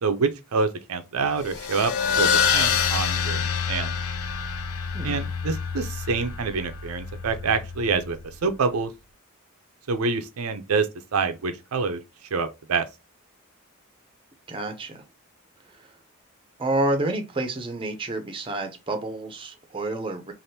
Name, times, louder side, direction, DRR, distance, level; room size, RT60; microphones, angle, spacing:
voice 1, 0.0-3.9 5.0-8.9 9.9-12.0 12.3-12.9, right 4 dB, 85° right, 0.5 m, -27 dB
sound 1, 1.3-8.4, left 6 dB, 85° left, 0.5 m, -27 dB
voice 2, 4.9-5.3 14.5-15.0 16.6-20.3, right 2 dB, 25° right, 0.6 m, -29 dB
3.3 x 2.5 x 2.7 m
head